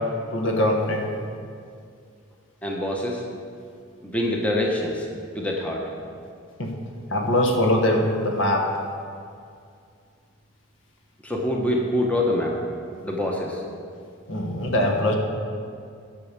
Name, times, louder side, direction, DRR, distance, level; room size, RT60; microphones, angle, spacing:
voice 1, 0.3-1.1 6.6-6.7 7.1-8.8 14.3-15.1, left 1 dB, 60° left, 2 dB, 1.3 m, -22 dB
voice 2, 2.6-3.2 4.0-5.1 5.3-5.8 11.2-12.6 13.0-13.6, left 1 dB, 5° left, -1 dB, 0.9 m, -25 dB
10.5 x 6.3 x 7.3 m, 2.3 s
head